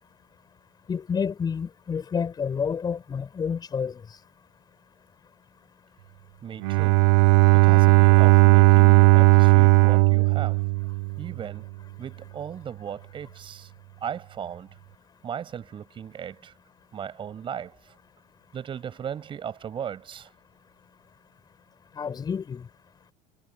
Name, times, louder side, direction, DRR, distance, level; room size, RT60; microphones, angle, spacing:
voice 1, 0.9-4.0 22.0-22.7, left 6 dB, 25° left, 7.3 m, -29 dB
voice 2, 6.4-7.1 7.5-10.6 11.2-11.7 12.0-13.7 14.0-14.8 15.2-16.5 16.9-18.0 18.5-20.3, right 8 dB, 30° right, 7.5 m, -37 dB
Bowed string instrument, 6.6-11.4, right 24 dB, 90° right, 0.5 m, -16 dB
cardioid pair, 145°, 16 cm